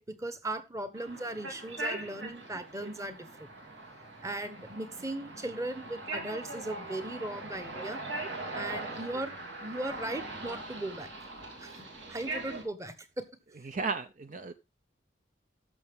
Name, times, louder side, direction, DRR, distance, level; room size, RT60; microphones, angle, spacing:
voice 1, 0.0-3.5 4.2-8.0 8.5-9.3 9.6-11.1 11.6-13.3, right 1 dB, 15° right, 11 dB, 1.2 m, -38 dB
sound 1, 0.9-12.6, right 2 dB, 75° right, 3.4 m, -41 dB
voice 2, 13.6-14.5, right 4 dB, 45° right, 10 dB, 0.6 m, -34 dB
13.0 x 6.5 x 3.6 m, 0.27 s
head